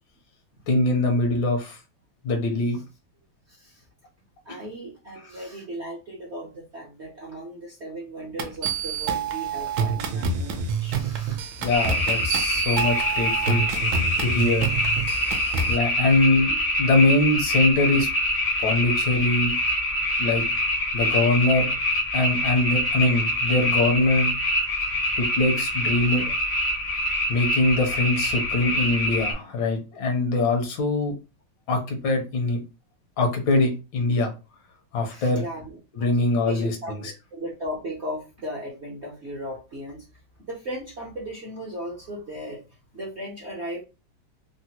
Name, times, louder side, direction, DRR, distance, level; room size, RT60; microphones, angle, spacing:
voice 1, 0.7-1.8 2.2-2.8 11.6-13.6 14.2-14.7 15.7-16.5 16.8-18.1 18.6-19.5 20.2-20.4 20.9-21.7 22.1-24.3 25.2-26.2 27.3-31.1 31.7-32.6 33.2-34.3 34.9-35.4 35.9-37.0, left 2 dB, 70° left, 3 dB, 1.5 m, -23 dB
voice 2, 3.5-3.9 4.4-11.4 11.8-12.0 16.5-16.6 35.1-36.1 36.4-40.1 40.5-42.6 42.9-43.8, equal, 50° right, -5 dB, 0.8 m, -36 dB
sound 1, 8.4-15.8, right 5 dB, 70° right, 1.1 m, -27 dB
sound 2, 11.7-29.3, equal, 50° left, 0.8 m, -25 dB
3.8 x 2.0 x 2.8 m, 0.30 s
omnidirectional pair, 2.2 m